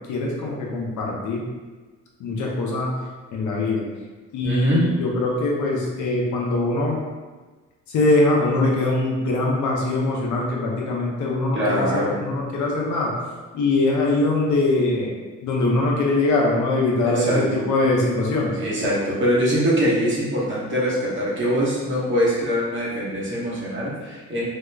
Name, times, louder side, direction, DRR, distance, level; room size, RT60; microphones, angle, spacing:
voice 1, 0.1-1.4 2.2-2.9 3.3-3.8 4.3-7.0 7.9-13.1 13.5-15.1 15.4-18.6, left 2 dB, 75° left, -2 dB, 0.8 m, -22 dB
voice 2, 4.4-4.9 11.5-12.2 17.0-17.6 18.6-24.4, equal, 40° right, -7 dB, 1.2 m, -23 dB
2.9 x 2.3 x 3.3 m, 1.3 s
cardioid pair, 90°, 30 cm